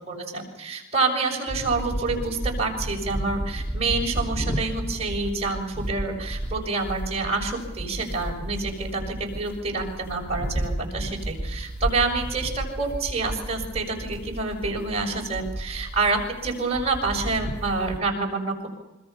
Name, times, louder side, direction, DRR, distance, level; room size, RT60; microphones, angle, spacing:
voice 1, 0.0-16.2 16.4-18.7, right 3 dB, 30° right, 0 dB, 6.7 m, -27 dB
sound 1, 1.5-18.0, right 1 dB, 10° left, 2.9 m, -32 dB
27.0 x 26.0 x 5.8 m, 1.0 s
head